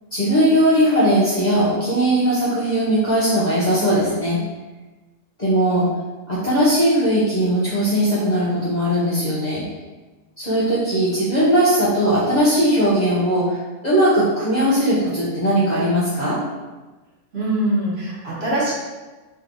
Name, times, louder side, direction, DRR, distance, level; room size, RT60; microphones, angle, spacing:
voice 1, 0.1-4.4 5.4-5.9 6.3-9.6 10.4-13.6 13.8-16.4, equal, 35° left, -8 dB, 0.8 m, -19 dB
voice 2, 17.3-18.7, right 1 dB, 50° right, -8 dB, 1.3 m, -22 dB
3.4 x 2.7 x 3.8 m, 1.2 s
omnidirectional pair, 1.5 m